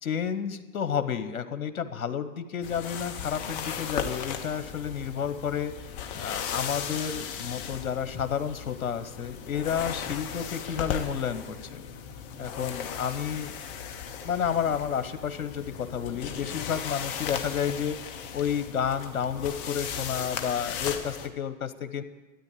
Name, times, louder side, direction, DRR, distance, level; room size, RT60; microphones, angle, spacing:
voice 1, 0.0-5.7 6.1-11.8 12.4-13.5 14.2-22.0, left 8 dB, 85° left, 11 dB, 1.0 m, -31 dB
sound 1, 2.6-21.3, left 7 dB, 15° left, 0.4 m, -37 dB
13.0 x 9.3 x 8.3 m, 1.2 s
hypercardioid pair, 130°, 42 cm